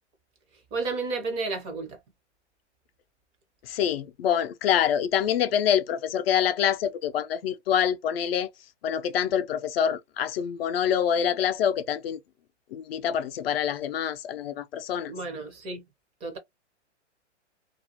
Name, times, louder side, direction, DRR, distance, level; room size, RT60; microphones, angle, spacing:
voice 1, 0.7-2.0 15.1-15.8 16.2-16.4, right 3 dB, 15° right, 0.5 m, -32 dB
voice 2, 3.7-8.5 8.8-12.2 12.7-15.1, left 9 dB, 55° left, 0.5 m, -26 dB
2.4 x 2.1 x 2.7 m
hypercardioid pair, 135°, 36 cm